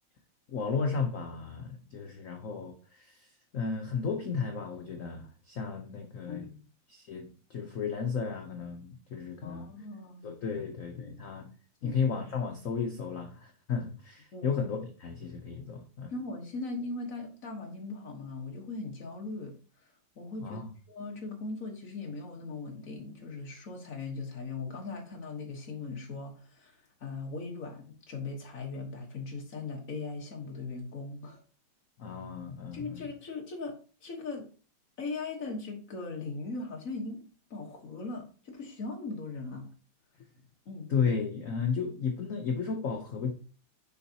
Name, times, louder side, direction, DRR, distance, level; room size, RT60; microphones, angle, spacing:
voice 1, 0.5-6.5 6.9-9.7 10.2-11.5 11.8-16.1 20.4-20.7 32.0-33.1 40.9-43.3, left 5 dB, 75° left, 4 dB, 0.7 m, -34 dB
voice 2, 6.3-6.7 9.4-10.4 10.9-11.2 11.8-12.0 14.3-14.5 16.1-19.6 20.1-20.6 20.9-31.4 32.7-34.5 35.0-37.2 37.5-39.7 40.6-40.9, left 3 dB, 45° left, 1 dB, 1.5 m, -39 dB
7.0 x 5.1 x 2.8 m, 0.38 s
omnidirectional pair, 2.4 m